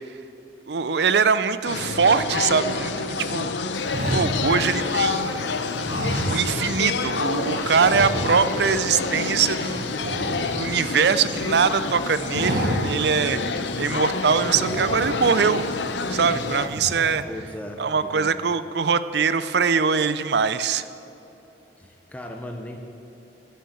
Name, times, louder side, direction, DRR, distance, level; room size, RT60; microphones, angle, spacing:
voice 1, 0.7-3.6 4.1-5.4 6.2-9.9 10.5-15.7 16.1-17.2 17.8-20.8, right 6 dB, 65° right, 13 dB, 0.5 m, -22 dB
sound 1, 1.6-16.7, left 4 dB, 75° left, 0.7 m, -28 dB
sound 2, 3.8-5.3 5.8-6.9 7.2-7.4 7.8-8.7 9.0-9.2 9.5-11.2 11.6-11.9 12.2-13.1 13.5-13.6 14.4-15.5 16.0-16.3 16.6-17.2, right 1 dB, 45° right, 1.6 m, -29 dB
voice 2, 17.3-18.4 21.8-22.8, left 1 dB, 10° left, 2 dB, 0.7 m, -37 dB
16.0 x 6.6 x 8.1 m, 3.0 s
head